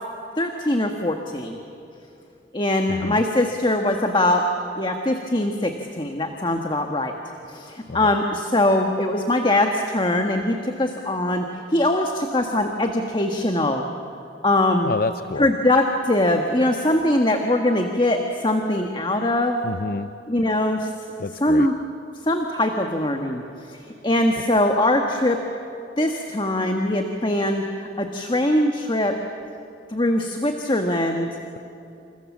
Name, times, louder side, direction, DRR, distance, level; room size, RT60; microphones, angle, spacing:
voice 1, 0.4-1.6 2.5-4.5 4.8-7.1 7.5-13.9 14.4-14.9 15.4-19.6 20.3-20.9 21.3-21.8 22.3-25.4 26.0-29.2 29.9-31.3, left 1 dB, 25° left, 4 dB, 1.5 m, -22 dB
voice 2, 14.8-15.5 19.6-20.1 21.2-21.7, left 3 dB, 55° left, 12 dB, 0.6 m, -28 dB
29.0 x 28.0 x 7.4 m, 2.8 s
head